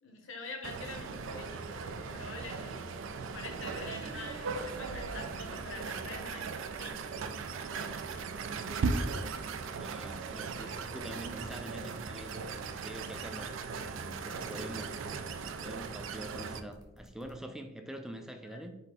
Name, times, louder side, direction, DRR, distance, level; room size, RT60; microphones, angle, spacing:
voice 1, 0.0-2.8 3.3-6.9 7.2-8.4 10.4-10.8 18.4-18.6, left 3 dB, 75° left, 3 dB, 0.8 m, -46 dB
sound 1, 0.6-16.6, right 4 dB, 75° right, 0.4 m, -38 dB
sound 2, 0.7-17.3, right 1 dB, 20° right, 0.9 m, -58 dB
voice 2, 9.8-12.4 12.7-13.6 13.9-15.0 15.4-18.8, right 1 dB, 5° right, 5 dB, 0.3 m, -45 dB
4.4 x 2.7 x 4.0 m, 0.91 s
head